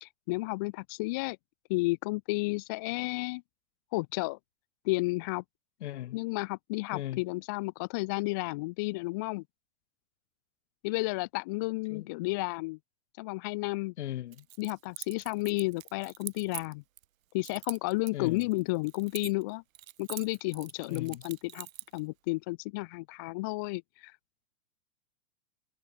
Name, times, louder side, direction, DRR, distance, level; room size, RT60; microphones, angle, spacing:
voice 1, 0.0-1.4 1.7-3.4 3.9-4.4 4.8-5.4 6.1-9.4 10.8-12.8 13.2-13.9 14.6-16.8 17.3-19.6 20.0-21.7 21.9-24.2, left 24 dB, 15° left, 0.5 m, -32 dB
voice 2, 5.8-6.2 6.9-7.2 11.9-12.1 14.0-14.4 18.1-18.5 20.8-21.2, left 13 dB, 55° left, 1.6 m, -37 dB
Keys jangling, 14.3-17.0 17.4-19.5 19.7-22.0, right 12 dB, 80° right, 1.4 m, -44 dB
supercardioid pair, 170°, 40 cm